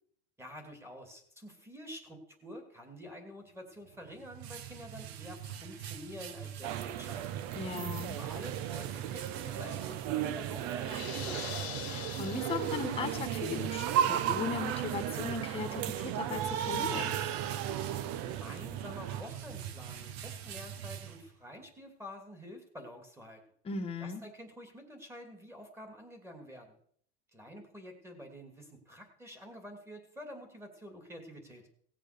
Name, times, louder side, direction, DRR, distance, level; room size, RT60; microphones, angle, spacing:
voice 1, 0.4-7.3 8.1-11.5 18.2-23.4 24.0-26.8 27.3-31.6, equal, 10° right, 5 dB, 2.6 m, -48 dB
sound 1, 3.8-21.7, right 10 dB, 85° right, 1.3 m, -46 dB
sound 2, 6.6-19.2, right 10 dB, 50° right, 0.9 m, -35 dB
voice 2, 7.5-8.2 11.8-17.2 23.6-24.2, left 5 dB, 20° left, 6 dB, 1.5 m, -38 dB
sound 3, 10.8-13.3, left 13 dB, 90° left, 1.5 m, -43 dB
17.5 x 7.5 x 6.7 m, 0.63 s
supercardioid pair, 145°, 31 cm